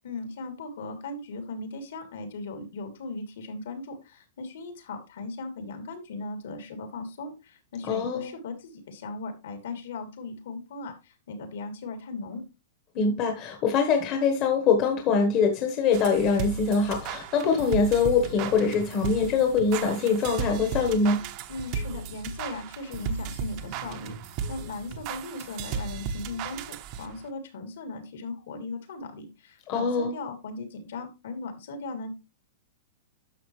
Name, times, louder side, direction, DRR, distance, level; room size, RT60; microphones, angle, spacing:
voice 1, 0.0-12.4 21.5-32.1, left 3 dB, 65° left, 3.1 m, -38 dB
voice 2, 7.9-8.3 12.9-21.2 29.7-30.1, left 5 dB, 25° left, 1.2 m, -23 dB
sound 1, 15.9-27.3, right 6 dB, 30° right, 0.8 m, -35 dB
11.0 x 6.7 x 3.2 m
supercardioid pair, 180°, 0 cm